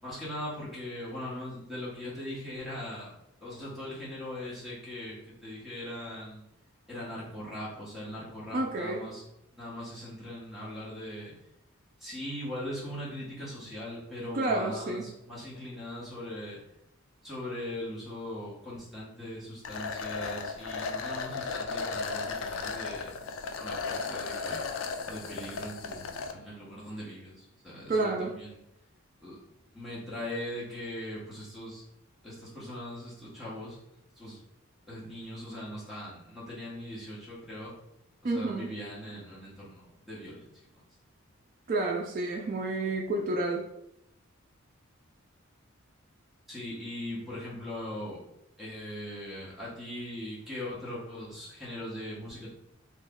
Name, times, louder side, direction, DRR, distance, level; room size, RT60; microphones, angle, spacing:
voice 1, 0.0-3.1 3.4-6.4 6.9-9.2 9.5-11.3 12.0-16.6 17.2-24.8 25.1-28.6 29.2-29.4 29.7-31.8 32.2-33.8 34.2-34.4 34.9-37.7 38.2-40.8 46.5-48.3 48.6-52.5, left 1 dB, ahead, -8 dB, 0.9 m, -40 dB
voice 2, 8.5-9.0 14.3-15.1 27.9-28.4 38.2-38.7 41.7-43.6, right 2 dB, 40° right, 0 dB, 0.3 m, -30 dB
sound 1, 19.6-26.3, left 4 dB, 65° left, 0.3 m, -35 dB
3.0 x 2.1 x 3.5 m, 0.82 s
head